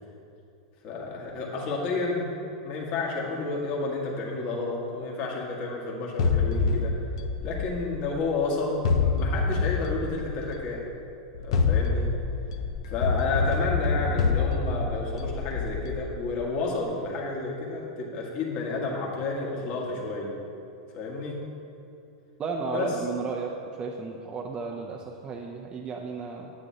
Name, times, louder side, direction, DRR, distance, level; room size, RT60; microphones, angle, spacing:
voice 1, 0.8-2.3 2.6-7.0 7.4-10.9 11.4-12.1 12.9-20.3 20.9-21.4 22.7-23.0, left 3 dB, 50° left, -3 dB, 1.7 m, -31 dB
sound 1, 6.2-8.3 8.8-10.7 11.3-16.4, left 4 dB, 75° left, 0.7 m, -26 dB
voice 2, 22.4-23.5 23.8-26.5, right 5 dB, 30° right, 1 dB, 0.6 m, -33 dB
9.7 x 9.1 x 2.8 m, 2.6 s
hypercardioid pair, 110°, 3 cm